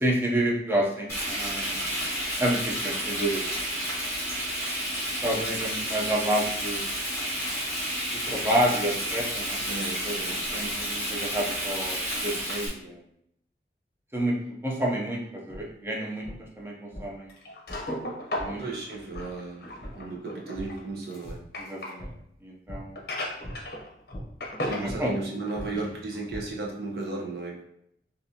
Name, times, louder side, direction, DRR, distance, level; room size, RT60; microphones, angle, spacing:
voice 1, 0.0-2.0 2.4-3.8 5.2-6.8 8.3-9.6 10.0-10.1 10.5-13.0 14.1-14.4 14.6-16.7 17.0-17.3 18.3-18.6 21.6-22.1 22.4-23.0 24.7-25.1 25.7-25.8, right 1 dB, 15° right, -3 dB, 0.6 m, -29 dB
Frying (food), 1.1-12.7, equal, 15° left, 1.4 m, -31 dB
voice 2, 9.6-10.6 18.6-19.7 19.9-21.4 24.6-27.6, right 3 dB, 60° right, -2 dB, 0.8 m, -35 dB
sound 1, 15.5-15.6 16.2-16.3 16.9-17.0 17.7-17.8 18.4-18.5 19.1-19.2 19.8-19.9 20.5-20.7 21.2-21.4 22.0-22.1 22.7-22.8 23.4-23.5 24.1-24.2 24.9-25.0 25.5-26.4, equal, 35° left, 1.0 m, -39 dB
sound 2, 16.0-16.1 17.3-22.0 23.0-24.2 24.4-24.9 25.3-25.9 26.4-26.5 27.0-27.1, left 1 dB, 60° left, 0.6 m, -36 dB
3.7 x 2.7 x 2.7 m, 0.74 s
head